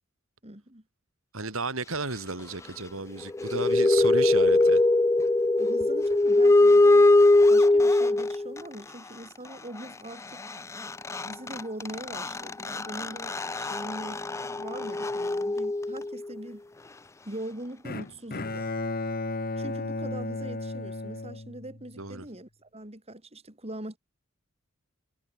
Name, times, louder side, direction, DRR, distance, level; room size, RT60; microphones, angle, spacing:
voice 1, 0.4-0.8 5.6-7.1 7.5-10.4 11.2-14.2 14.6-16.6 17.2-18.7 19.6-24.0, right 1 dB, 30° right, 4.5 m, -41 dB
voice 2, 1.3-4.8 22.0-22.3, right 3 dB, 75° right, 4.3 m, -33 dB
sound 1, 3.2-8.6 10.5-10.6 10.8-16.3, left 2 dB, 15° left, 0.4 m, -22 dB
Bowed string instrument, 17.8-22.1, left 2 dB, 45° left, 1.6 m, -34 dB
head